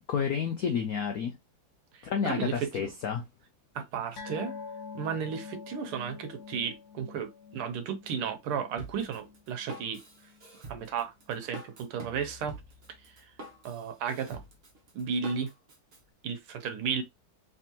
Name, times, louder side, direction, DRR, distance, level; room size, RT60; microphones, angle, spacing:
voice 1, 0.1-1.3 2.0-3.2, left 7 dB, 85° left, 0.8 m, -30 dB
voice 2, 1.9-2.9 3.7-4.5 4.9-10.0 10.7-12.6 13.0-13.3 13.6-14.4 14.9-15.5 16.2-17.0, right 7 dB, 80° right, 1.7 m, -34 dB
sound 1, 4.2-11.0 11.2-11.5 11.8-11.9, left 5 dB, 55° left, 1.4 m, -46 dB
Drum kit, 8.8-16.0, right 2 dB, 40° right, 0.9 m, -46 dB
3.5 x 3.4 x 2.8 m
omnidirectional pair, 2.4 m